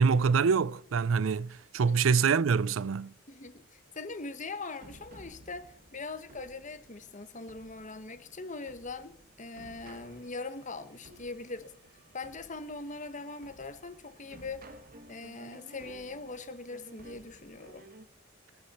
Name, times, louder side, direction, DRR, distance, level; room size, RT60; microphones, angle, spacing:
voice 1, 0.0-3.1, right 5 dB, 75° right, 0.5 m, -25 dB
voice 2, 3.3-11.7 12.1-14.6 15.1-17.8, left 3 dB, 40° left, 1.2 m, -41 dB
sound 1, 4.8-18.1, right 1 dB, 45° right, 1.2 m, -55 dB
25.0 x 9.8 x 4.3 m
head